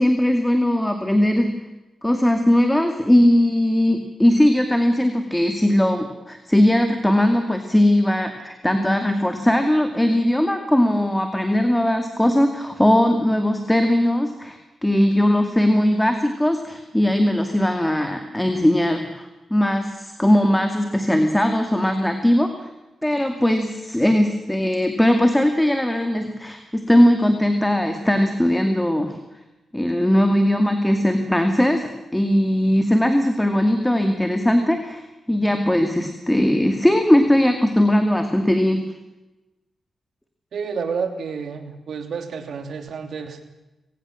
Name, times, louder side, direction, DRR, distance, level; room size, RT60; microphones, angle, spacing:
voice 1, 0.0-1.5 2.0-22.7 23.0-29.2 29.7-35.0 35.3-38.8, left 1 dB, 10° left, 6 dB, 2.3 m, -19 dB
voice 2, 40.5-43.4, right 5 dB, 75° right, 7 dB, 3.0 m, -29 dB
22.5 x 18.0 x 7.3 m, 1.0 s
cardioid pair, 75°, 0 cm